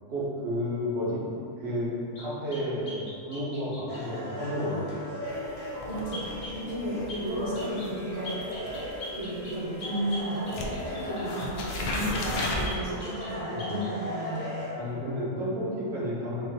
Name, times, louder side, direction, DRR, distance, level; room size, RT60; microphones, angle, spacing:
voice 1, 0.1-1.2 1.6-4.9 10.8-11.0 13.5-13.8 14.7-16.5, equal, 50° right, -7 dB, 1.1 m, -32 dB
sound 1, 2.2-4.1 6.1-6.6 7.1-7.3 7.6-7.9 8.2-11.5 12.1-13.3 13.6-13.9, left 1 dB, 55° left, 1.1 m, -42 dB
sound 2, 3.9-14.7, left 1 dB, 30° left, 0.7 m, -37 dB
sound 3, 5.3-10.2 10.5-12.7, left 1 dB, 90° left, 0.4 m, -35 dB
voice 2, 5.9-6.3 6.5-8.3 9.1-14.5, right 1 dB, 30° right, -11 dB, 0.8 m, -34 dB
3.3 x 2.7 x 3.9 m, 2.7 s
omnidirectional pair, 1.5 m